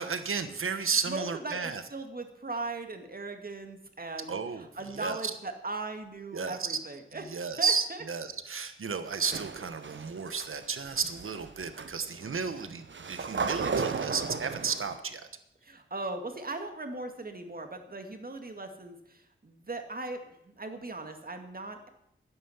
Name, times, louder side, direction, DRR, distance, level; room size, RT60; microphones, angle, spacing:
voice 1, 0.0-1.8 4.3-4.7 4.9-5.3 6.3-6.8 7.3-15.3, right 5 dB, 80° right, 10 dB, 1.2 m, -33 dB
voice 2, 0.7-8.1 15.6-21.9, right 2 dB, 45° right, 6 dB, 2.0 m, -39 dB
sound 1, 9.1-15.0, right 5 dB, 65° right, 0.9 m, -35 dB
11.5 x 10.5 x 7.2 m, 0.75 s
wide cardioid pair, 85°, 21 cm